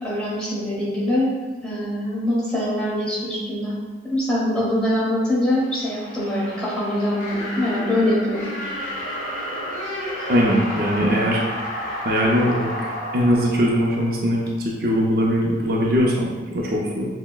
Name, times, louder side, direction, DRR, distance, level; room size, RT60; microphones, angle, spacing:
voice 1, 0.0-1.4 1.6-3.7 4.0-8.5, left 1 dB, 5° left, -8 dB, 1.0 m, -23 dB
sound 1, 5.6-14.5, equal, 45° left, 0.8 m, -31 dB
voice 2, 10.3-11.4 12.0-17.0, equal, 55° right, -2 dB, 0.5 m, -21 dB
5.9 x 2.1 x 2.3 m, 1.3 s
head